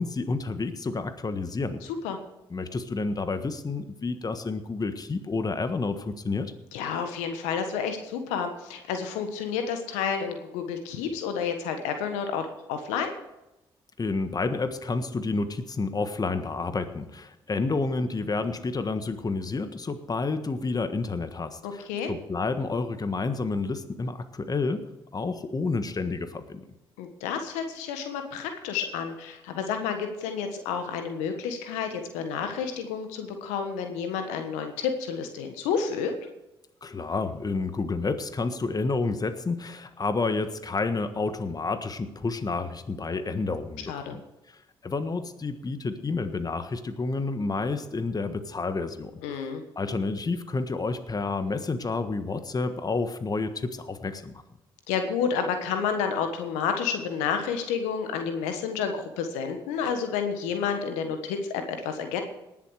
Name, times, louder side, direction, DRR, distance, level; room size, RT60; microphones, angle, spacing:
voice 1, 0.0-1.8 2.5-6.5 14.0-24.8 25.1-26.7 36.8-44.2 44.5-49.4 49.7-54.4, left 3 dB, 35° left, 10 dB, 1.4 m, -30 dB
voice 2, 6.7-13.2 21.6-22.1 27.0-36.1 43.9-44.1 49.2-49.6 54.9-62.2, left 6 dB, 80° left, 6 dB, 1.4 m, -30 dB
19.0 x 7.6 x 4.9 m, 0.95 s
hypercardioid pair, 45°, 12 cm